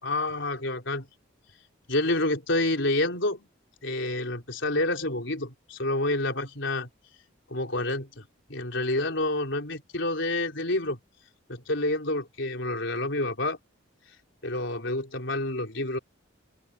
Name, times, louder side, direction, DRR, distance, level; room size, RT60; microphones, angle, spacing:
voice 1, 0.0-1.1 1.9-3.5 3.8-6.9 7.5-8.2 8.5-11.0 11.5-13.6 14.4-16.0, left 2 dB, 65° left, 4.2 m, -28 dB
open air
head